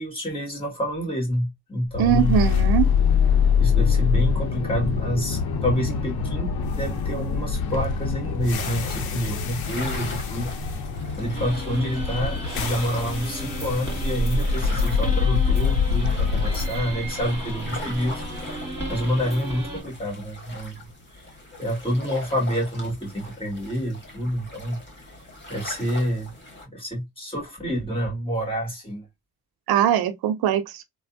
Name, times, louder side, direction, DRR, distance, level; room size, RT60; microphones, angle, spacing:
voice 1, 0.0-2.5 3.6-10.8 11.2-18.5 18.9-21.2 21.6-25.1 25.5-26.3 26.7-29.1, equal, 15° left, 1.8 m, -28 dB
sound 1, 1.9-20.0, left 5 dB, 85° left, 0.7 m, -25 dB
voice 2, 2.0-2.9 29.7-30.8, right 10 dB, 85° right, 0.5 m, -21 dB
sound 2, 8.6-26.7, left 1 dB, 30° left, 1.6 m, -41 dB
sound 3, 11.3-19.8, right 1 dB, 10° right, 2.0 m, -35 dB
3.2 x 2.0 x 2.4 m
cardioid pair, 85°, 36 cm